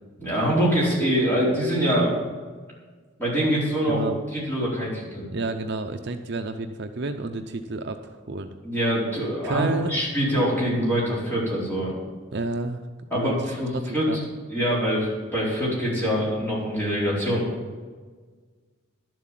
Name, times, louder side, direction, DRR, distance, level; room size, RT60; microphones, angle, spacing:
voice 1, 0.2-2.1 3.2-4.0 4.3-5.2 8.6-11.9 13.1-14.2 14.5-17.4, equal, 10° left, -7 dB, 4.5 m, -24 dB
voice 2, 3.9-4.2 5.3-8.6 9.4-10.0 12.3-12.8 13.1-14.2, right 3 dB, 50° right, 6 dB, 0.6 m, -30 dB
11.5 x 7.7 x 7.6 m, 1.5 s
head